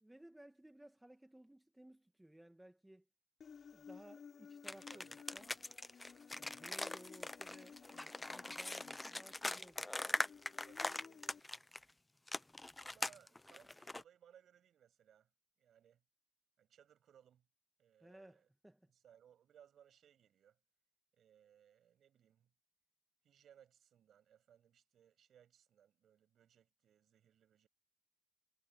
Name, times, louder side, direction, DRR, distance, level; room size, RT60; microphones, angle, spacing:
voice 1, 0.0-3.0 3.7-5.1 5.3-5.6 6.4-9.9 18.0-18.9, right 1 dB, 10° right, 1.7 m, -59 dB
Human voice, 3.4-11.4, left 6 dB, 50° left, 3.2 m, -57 dB
sound 1, 4.6-11.8 12.3-14.0, left 2 dB, 15° left, 0.4 m, -42 dB
voice 2, 4.7-5.1 10.5-11.6 12.8-15.3 15.6-16.0 16.6-17.5 17.8-18.5 18.9-20.6 21.1-22.5 23.2-27.7, right 9 dB, 65° right, 7.9 m, -67 dB
cardioid pair, 90°, 0 cm